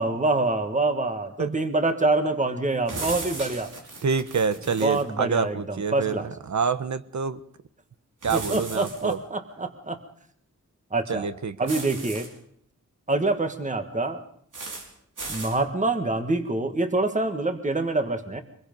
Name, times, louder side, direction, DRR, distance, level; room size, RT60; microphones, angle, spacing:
voice 1, 0.0-3.7 4.8-6.3 8.3-10.0 10.9-11.3 11.6-12.3 13.1-14.2 15.3-18.4, right 2 dB, 25° right, 7 dB, 1.7 m, -26 dB
sound 1, 2.9-5.0 8.2-9.1 11.7-12.3 14.5-14.9 15.2-15.6, right 3 dB, 80° right, 5.6 m, -36 dB
voice 2, 4.0-7.4 8.2-9.2 11.1-11.6, right 5 dB, 65° right, 12 dB, 1.1 m, -27 dB
24.5 x 21.5 x 5.4 m, 0.66 s
wide cardioid pair, 125°, 31 cm